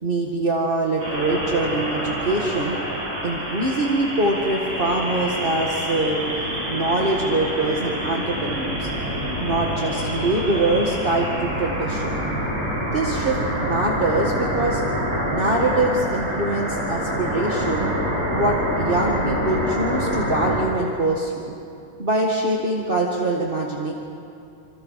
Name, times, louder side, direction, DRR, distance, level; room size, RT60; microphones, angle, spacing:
voice 1, 0.0-2.8 3.2-6.2 6.7-8.9 9.4-12.2 12.8-14.8 15.3-17.9 18.3-21.5 22.0-23.9, right 2 dB, 25° right, -2 dB, 1.2 m, -23 dB
sound 1, 1.0-20.6, equal, 55° right, 9.0 m, -26 dB
27.0 x 26.5 x 5.7 m, 2.6 s
omnidirectional pair, 3.7 m